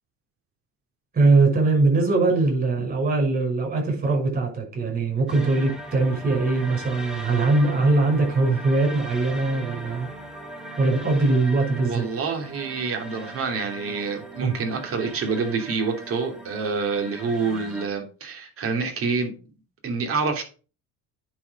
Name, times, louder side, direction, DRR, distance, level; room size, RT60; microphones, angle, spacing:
voice 1, 1.1-10.1 10.8-12.1 14.4-14.5, right 3 dB, 30° right, 0 dB, 6.1 m, -21 dB
sound 1, 5.3-17.9, right 1 dB, ahead, 2.0 m, -39 dB
voice 2, 11.8-19.3 19.8-20.4, right 4 dB, 45° right, 3 dB, 3.0 m, -27 dB
10.0 x 4.9 x 5.3 m, 0.35 s
cardioid pair, 120°, 31 cm